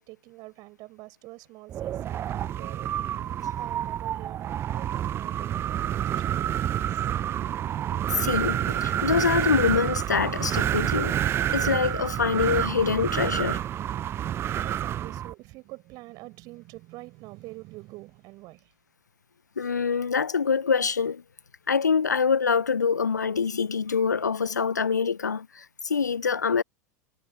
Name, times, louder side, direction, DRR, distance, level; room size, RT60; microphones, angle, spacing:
voice 1, 0.0-7.1 14.3-18.7, right 21 dB, 45° right, 4.8 m, -46 dB
Wind, 1.7-15.3, right 11 dB, 25° right, 0.4 m, -28 dB
voice 2, 8.1-11.2 11.5-13.6 19.6-21.2 21.7-26.6, left 5 dB, 85° left, 0.4 m, -25 dB
figure-of-eight pair, 85°, 9 cm